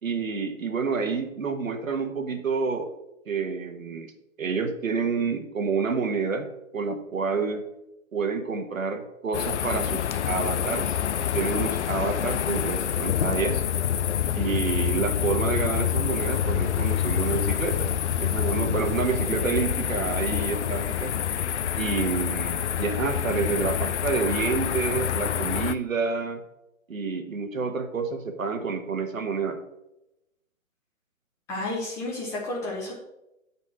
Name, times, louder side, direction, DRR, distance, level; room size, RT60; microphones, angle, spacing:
voice 1, 0.0-2.9 3.3-4.1 4.4-7.6 8.1-11.0 11.3-13.6 14.4-17.9 18.2-21.1 21.8-26.4 26.9-29.6, right 5 dB, 75° right, 6 dB, 1.3 m, -28 dB
sound 1, 9.3-25.8, left 9 dB, 60° left, 0.5 m, -27 dB
voice 2, 31.5-32.9, left 2 dB, 5° left, -4 dB, 0.6 m, -31 dB
8.1 x 4.2 x 6.0 m, 0.89 s
figure-of-eight pair, 135°, 40 cm